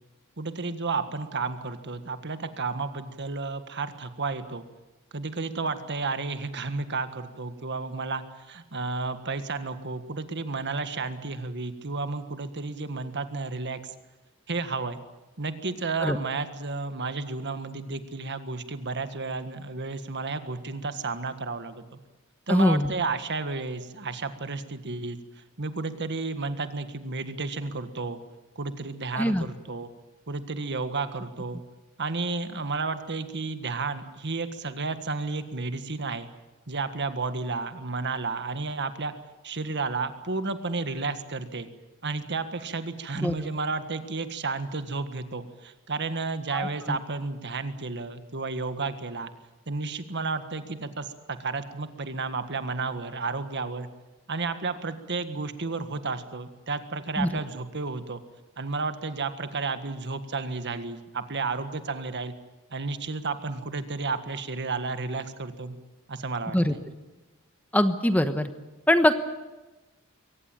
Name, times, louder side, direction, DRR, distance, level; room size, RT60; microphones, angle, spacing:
voice 1, 0.4-4.6 5.1-13.8 14.5-15.0 15.4-22.0 22.5-28.2 28.5-29.9 30.3-31.6 32.0-36.3 36.7-39.1 39.4-41.7 42.0-49.3 49.7-53.9 54.3-58.2 58.6-62.3 62.7-65.8 66.1-66.8, right 3 dB, 55° right, 10 dB, 1.6 m, -32 dB
voice 2, 22.5-22.9 29.1-29.4 43.2-43.3 46.5-47.0 57.2-57.3 66.5-66.7 67.7-68.5 68.9-69.1, left 1 dB, 5° left, 9 dB, 1.1 m, -22 dB
23.0 x 18.0 x 9.0 m, 1.1 s
head